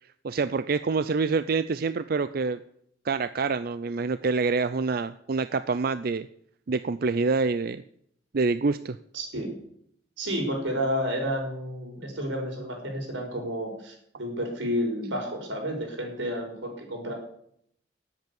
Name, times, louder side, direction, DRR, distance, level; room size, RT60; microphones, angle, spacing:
voice 1, 0.2-2.6 3.0-6.3 6.7-7.8 8.3-9.0, right 4 dB, 50° right, 13 dB, 0.5 m, -26 dB
voice 2, 9.1-9.5 10.2-17.1, equal, 90° right, 2 dB, 5.4 m, -31 dB
18.5 x 8.2 x 7.1 m, 0.69 s
head